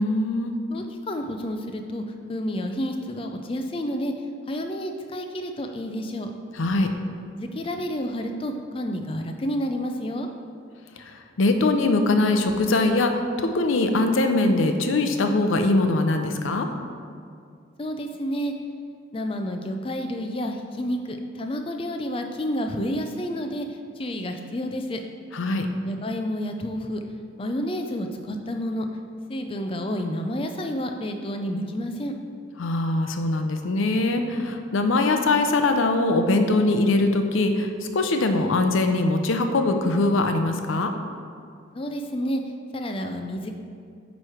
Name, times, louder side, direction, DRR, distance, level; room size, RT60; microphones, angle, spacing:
voice 1, 0.0-0.5 6.5-6.9 11.0-16.7 25.3-25.7 32.6-40.9, left 2 dB, 75° left, 6 dB, 0.5 m, -22 dB
voice 2, 0.7-2.0 2.3-4.1 4.5-6.3 7.3-10.3 17.8-18.5 19.1-23.7 24.0-25.0 25.9-27.0 27.4-28.9 29.3-32.1 41.7-42.4 42.7-43.5, equal, 25° left, 5 dB, 0.4 m, -30 dB
8.8 x 3.2 x 4.9 m, 2.3 s
head